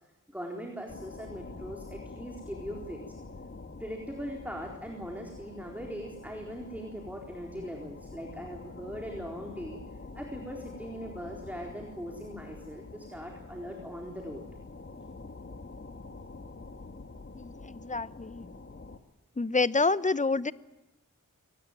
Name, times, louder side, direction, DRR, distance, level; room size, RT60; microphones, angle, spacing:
voice 1, 0.3-3.0 3.8-9.8 10.1-14.4, equal, 5° right, 1 dB, 4.0 m, -40 dB
sound 1, 0.9-19.0, left 3 dB, 40° left, 1.7 m, -46 dB
voice 2, 17.3-18.5 19.4-20.5, left 3 dB, 25° left, 16 dB, 0.8 m, -28 dB
23.5 x 19.0 x 9.2 m, 1.1 s
cardioid pair, 50°, 33 cm